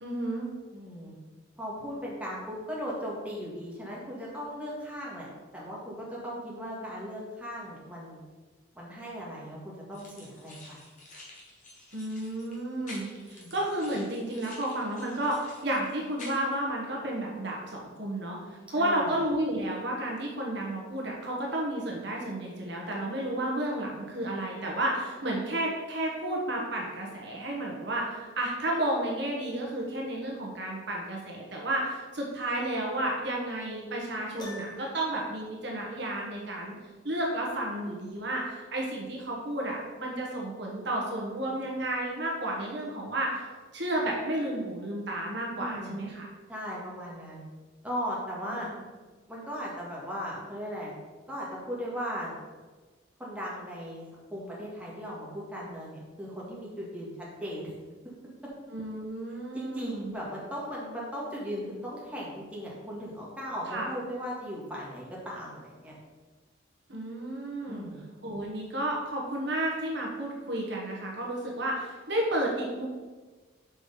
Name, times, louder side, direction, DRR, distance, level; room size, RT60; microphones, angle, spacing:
voice 1, 0.0-0.5 11.9-36.8 37.0-43.4 43.7-46.3 48.5-48.6 58.7-60.1 63.7-63.9 66.9-67.9 68.2-72.9, right 1 dB, 55° right, -2 dB, 1.3 m, -32 dB
voice 2, 0.7-1.1 1.6-5.3 5.5-8.2 8.8-10.8 13.4-13.5 18.8-19.1 45.6-46.0 46.5-47.4 47.8-48.7 49.3-50.9 51.3-52.3 53.2-54.1 54.3-57.7 59.5-66.0 67.7-68.1, equal, 5° right, -5 dB, 1.7 m, -37 dB
sound 1, 9.9-16.6, left 1 dB, 40° left, 1.7 m, -49 dB
Piano, 34.4-35.2, left 1 dB, 20° left, 1.3 m, -43 dB
6.3 x 4.9 x 5.1 m, 1.3 s
head